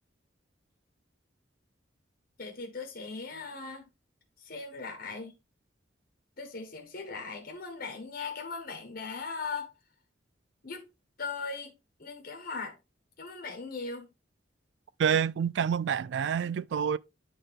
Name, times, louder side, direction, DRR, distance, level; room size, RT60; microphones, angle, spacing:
voice 1, 2.4-3.9 4.4-5.3 6.4-9.7 10.6-10.8 11.2-11.7 12.0-12.8 13.2-14.1, left 4 dB, 50° left, 1.3 m, -39 dB
voice 2, 15.0-17.0, right 7 dB, 65° right, 0.3 m, -27 dB
9.0 x 3.7 x 3.5 m
head